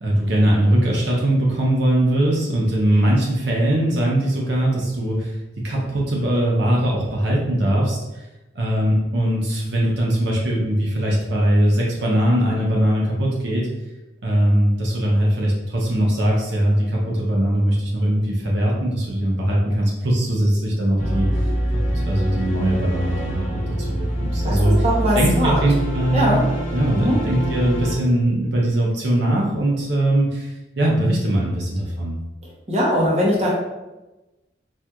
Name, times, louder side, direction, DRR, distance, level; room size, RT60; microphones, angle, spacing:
voice 1, 0.0-5.3 5.6-8.3 8.5-13.7 14.2-21.5 21.9-24.7 25.1-26.4 26.7-32.1, right 1 dB, 65° right, -3 dB, 0.6 m, -20 dB
sound 1, 21.0-27.9, equal, 40° left, 0.8 m, -25 dB
voice 2, 24.8-25.6 26.1-26.4 26.9-27.2 32.4-33.5, equal, 35° right, -4 dB, 0.7 m, -20 dB
4.3 x 2.4 x 2.3 m, 1.0 s
head